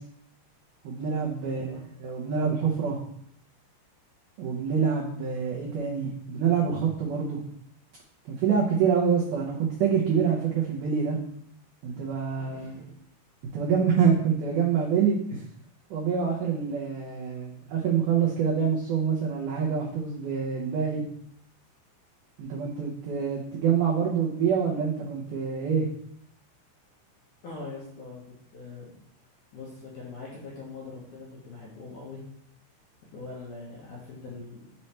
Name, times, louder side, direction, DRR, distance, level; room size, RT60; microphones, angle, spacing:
voice 1, 0.8-1.7 2.0-3.0 4.4-7.4 8.3-11.2 11.8-12.8 13.5-15.4 15.9-21.0 22.4-25.9, right 6 dB, 85° right, -4 dB, 1.8 m, -26 dB
voice 2, 1.4-1.8 12.3-12.9 27.4-29.0 29.5-32.2 33.1-34.7, left 3 dB, 65° left, -5 dB, 2.0 m, -42 dB
7.2 x 3.3 x 4.3 m, 0.69 s
omnidirectional pair, 5.0 m